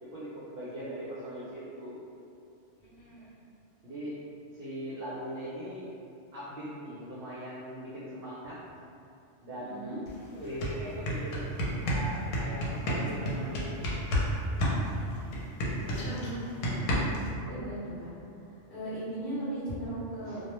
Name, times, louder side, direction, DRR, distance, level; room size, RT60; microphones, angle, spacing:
voice 1, 0.0-2.0 3.2-3.3 3.8-4.2 4.5-5.9 6.3-8.6 9.4-10.0 10.3-11.4 11.7-14.0 15.0-15.1 20.2-20.4, equal, 60° right, -9 dB, 0.7 m, -40 dB
voice 2, 2.8-3.3 9.6-10.0 15.8-16.9 17.4-18.1 18.7-20.4, right 1 dB, 50° left, -11 dB, 0.8 m, -38 dB
sound 1, 10.1-10.2 10.4-14.3 14.6-17.3, equal, 85° left, 0.9 m, -30 dB
2.3 x 2.0 x 2.9 m, 2.6 s
omnidirectional pair, 1.3 m